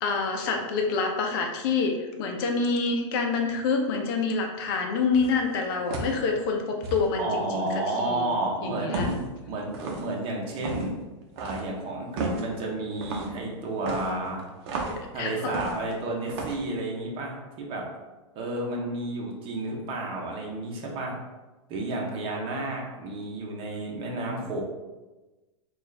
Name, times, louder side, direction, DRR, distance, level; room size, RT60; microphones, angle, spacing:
voice 1, 0.0-7.7 8.0-8.3 8.6-9.1 15.2-15.5, left 4 dB, 50° left, 3 dB, 0.7 m, -27 dB
sound 1, 5.1-5.4 5.9-6.2 6.8-7.0 8.9-9.3 9.7-10.1 10.6-10.9 11.4-11.7 12.2-12.5 13.0-13.3 13.8-15.0 15.5-15.9 16.3-16.6, right 2 dB, 55° right, 0.8 m, -33 dB
voice 2, 7.2-9.2 9.5-10.9 11.4-14.4 15.1-17.9 18.3-21.1 21.7-24.6, right 2 dB, 35° right, -1 dB, 1.0 m, -31 dB
4.3 x 2.6 x 3.3 m, 1.1 s
hypercardioid pair, 140°, 16 cm